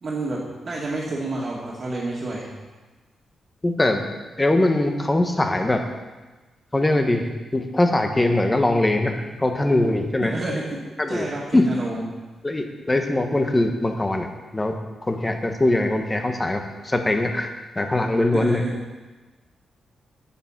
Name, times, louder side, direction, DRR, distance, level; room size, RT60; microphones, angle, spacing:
voice 1, 0.0-2.5 10.2-10.8 11.1-12.0 18.3-18.7, right 2 dB, 40° right, -5 dB, 2.2 m, -29 dB
voice 2, 3.6-4.0 4.4-5.8 6.7-7.2 7.5-10.3 11.0-11.3 11.5-11.7 12.4-14.3 14.5-14.7 15.1-17.5 17.8-18.6, left 1 dB, 15° left, 5 dB, 1.2 m, -21 dB
10.0 x 9.8 x 5.8 m, 1.2 s
wide cardioid pair, 135°, 0 cm